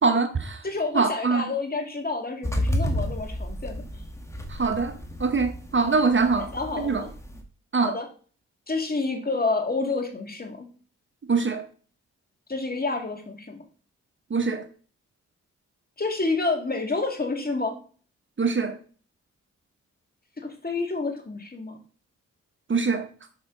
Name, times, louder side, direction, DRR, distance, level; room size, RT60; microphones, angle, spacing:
voice 1, 0.0-0.6 0.9-1.5 4.5-4.9 5.2-6.5 6.8-7.0 7.7-7.9 11.3-11.7 14.3-14.7 18.4-18.8 22.7-23.1, right 4 dB, 40° right, 1.0 m, -23 dB
voice 2, 0.6-3.8 6.4-7.1 7.8-8.1 8.7-10.7 12.5-13.6 16.0-17.7 20.4-21.8, left 3 dB, 30° left, 2.2 m, -29 dB
sound 1, 2.4-7.4, equal, 10° left, 1.6 m, -31 dB
6.6 x 5.3 x 3.9 m
supercardioid pair, 45°, 32 cm